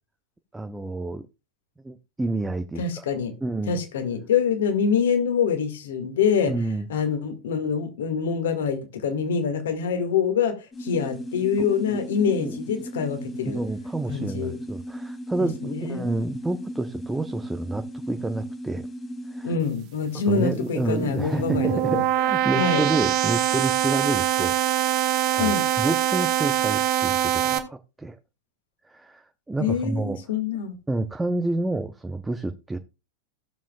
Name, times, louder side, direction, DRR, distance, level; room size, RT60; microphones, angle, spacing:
voice 1, 0.5-1.2 1.8-3.0 3.4-3.8 6.5-6.9 11.6-12.0 12.4-12.6 13.5-18.8 19.3-19.5 20.3-24.5 25.3-28.2 28.9-30.2 30.9-32.8, right 2 dB, 10° right, 0.6 m, -29 dB
voice 2, 2.8-3.3 3.7-6.5 6.9-13.6 14.1-14.6 15.4-16.1 19.4-22.1 22.6-22.8 25.4-25.6 29.6-30.7, left 6 dB, 60° left, 2.0 m, -25 dB
sound 1, 10.7-19.6, equal, 20° left, 2.0 m, -36 dB
sound 2, 21.1-27.6, right 12 dB, 40° right, 1.3 m, -23 dB
16.0 x 7.1 x 2.4 m
figure-of-eight pair, 90°, 0 cm